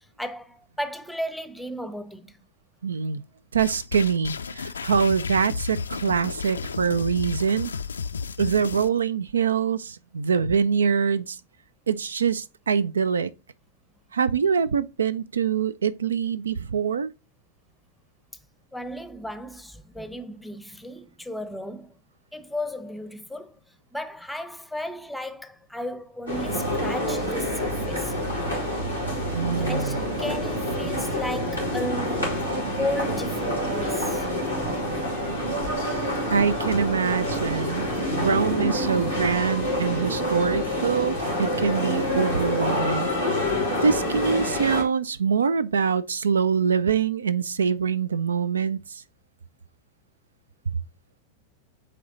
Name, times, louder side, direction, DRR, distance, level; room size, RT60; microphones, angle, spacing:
voice 1, 0.2-2.3 18.7-21.9 22.3-23.6 23.9-28.1 29.6-32.5 32.8-34.3, left 1 dB, ahead, 0.7 m, -34 dB
voice 2, 2.8-3.2 3.5-7.7 8.4-11.4 11.9-13.3 14.1-17.1 29.3-30.0 36.3-43.1 43.8-49.0, right 6 dB, 70° right, 0.3 m, -24 dB
sound 1, 3.6-8.9, left 5 dB, 70° left, 0.3 m, -33 dB
sound 2, 26.3-44.8, left 1 dB, 90° right, 2.9 m, -27 dB
8.6 x 3.3 x 3.7 m
figure-of-eight pair, 90°, 0 cm